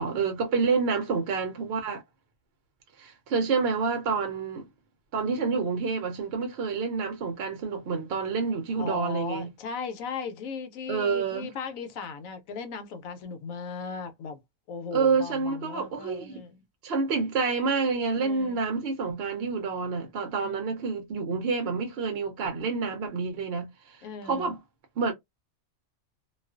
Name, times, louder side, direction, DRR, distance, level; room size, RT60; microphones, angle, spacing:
voice 1, 0.0-2.0 3.0-4.7 5.1-9.5 10.9-11.5 14.9-16.4 16.8-24.6 25.0-25.1, right 5 dB, 60° right, 0.7 m, -28 dB
voice 2, 8.8-14.4 14.7-16.6 18.1-18.7 20.4-20.6 24.0-24.6, left 5 dB, 80° left, 1.0 m, -37 dB
2.4 x 2.3 x 2.3 m
omnidirectional pair, 1.4 m